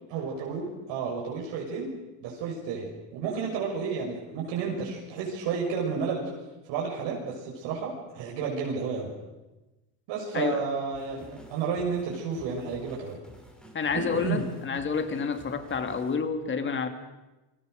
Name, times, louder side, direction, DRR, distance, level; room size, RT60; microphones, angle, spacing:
voice 1, 0.1-1.9 2.2-6.3 6.7-9.1 10.1-13.2 13.9-14.4, right 5 dB, 70° right, -2 dB, 6.3 m, -31 dB
sound 1, 10.9-16.2, right 1 dB, ahead, 5.1 m, -51 dB
voice 2, 13.7-16.9, left 5 dB, 25° left, 7 dB, 2.5 m, -29 dB
29.5 x 24.0 x 6.6 m, 1.1 s
cardioid pair, 150°, 46 cm